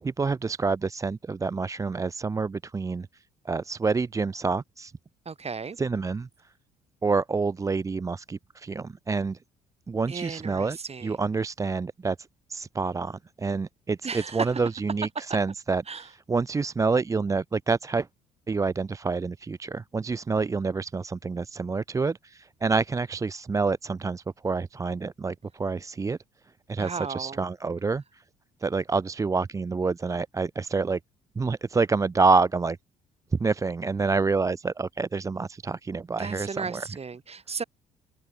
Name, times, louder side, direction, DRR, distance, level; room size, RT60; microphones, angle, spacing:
voice 1, 0.0-4.9 5.8-6.3 7.0-9.4 9.9-12.2 12.5-18.1 18.5-26.2 26.7-28.2 28.6-31.0 31.4-32.8 33.3-36.9, right 4 dB, 15° right, 0.4 m, -27 dB
voice 2, 5.3-5.8 10.1-11.1 14.0-14.5 15.9-16.0 26.8-27.4 36.2-37.6, right 5 dB, 30° right, 3.6 m, -34 dB
open air
hypercardioid pair, 50°, 20 cm